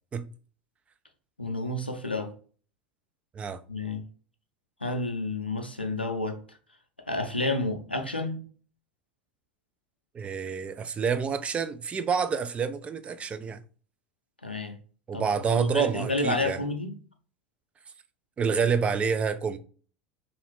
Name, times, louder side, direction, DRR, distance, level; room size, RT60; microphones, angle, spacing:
voice 1, 1.4-2.3 3.7-4.0 4.8-6.6 7.1-8.4 14.4-14.8 15.1-17.0, left 2 dB, 90° left, 0.5 m, -30 dB
voice 2, 10.1-13.6 15.1-16.6 18.4-19.6, right 6 dB, 20° right, 0.4 m, -28 dB
3.1 x 2.5 x 3.1 m
figure-of-eight pair, 80°, 5 cm